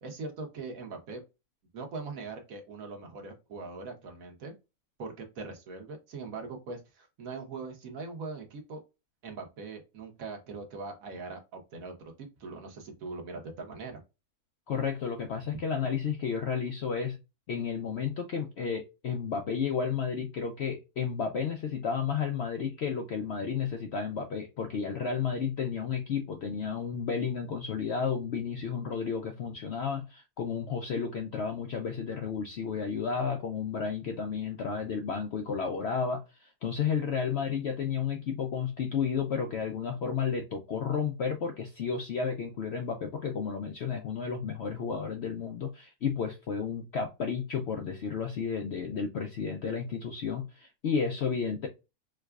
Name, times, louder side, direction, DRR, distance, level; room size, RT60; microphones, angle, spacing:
voice 1, 0.0-1.2 1.7-4.5 5.0-8.8 9.2-14.0, right 4 dB, 65° right, 1.3 m, -41 dB
voice 2, 14.7-17.2 17.5-51.7, left 6 dB, 65° left, 0.6 m, -32 dB
4.6 x 2.3 x 2.3 m
omnidirectional pair, 1.6 m